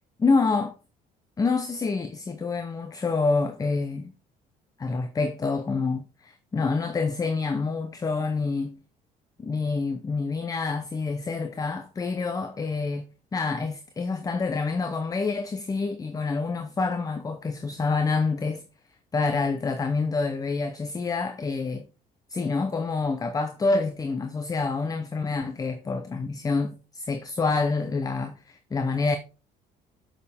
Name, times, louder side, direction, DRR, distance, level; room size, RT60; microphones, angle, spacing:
voice 1, 0.2-0.8 1.4-4.1 4.8-8.8 9.4-18.6 19.1-21.9 22.3-29.2, left 4 dB, 20° left, 0.7 m, -27 dB
7.5 x 6.6 x 3.5 m
cardioid pair, 110°, 17 cm